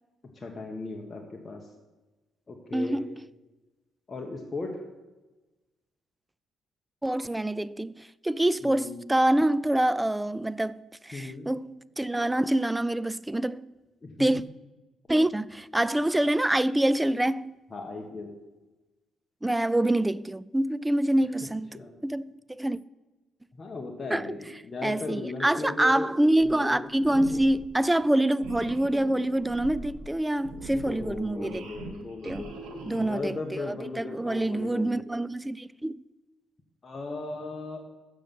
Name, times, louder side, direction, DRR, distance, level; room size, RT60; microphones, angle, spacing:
voice 1, 0.3-1.7 2.5-3.0 4.1-4.8 8.6-9.0 11.1-11.5 14.0-14.3 17.7-18.3 21.7-21.9 23.5-26.1 26.4-26.8 30.7-32.7 33.0-35.1 36.8-37.8, left 3 dB, 30° left, 1.3 m, -37 dB
voice 2, 2.7-3.1 7.0-13.7 14.2-14.4 15.1-17.5 19.4-21.8 22.0-22.8 24.1-24.3 24.8-31.7 32.2-32.4 32.9-36.0, right 1 dB, 10° right, 0.3 m, -26 dB
sound 1, 26.4-26.8 27.0-27.6 28.4-33.4, right 3 dB, 85° right, 1.9 m, -42 dB
7.5 x 6.8 x 7.6 m
cardioid pair, 90°, 0 cm